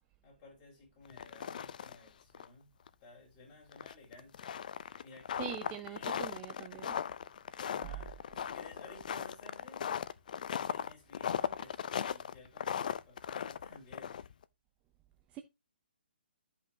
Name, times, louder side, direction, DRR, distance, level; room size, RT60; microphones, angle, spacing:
voice 1, 0.2-2.7 3.0-4.6 5.0-6.3 7.6-9.8 10.6-14.2, left 2 dB, 25° left, 4.5 m, -56 dB
sound 1, 1.1-2.1 2.3-2.5 2.9-3.0 3.7-14.4, left 8 dB, 50° left, 0.5 m, -38 dB
voice 2, 5.4-7.0 15.3-15.4, right 10 dB, 20° right, 0.5 m, -43 dB
13.0 x 5.5 x 2.7 m
hypercardioid pair, 145°, 6 cm